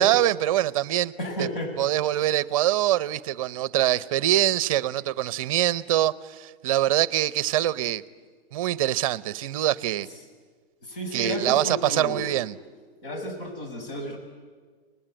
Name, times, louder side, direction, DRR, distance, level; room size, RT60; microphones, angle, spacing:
voice 1, 0.0-1.1 1.4-1.5 1.8-8.0 8.5-10.1 11.1-12.6, right 13 dB, 35° right, 0.7 m, -24 dB
voice 2, 1.2-1.7 10.8-12.4 13.0-14.2, left 1 dB, 60° left, 6.6 m, -32 dB
30.0 x 20.0 x 8.8 m
hypercardioid pair, 155°, 30 cm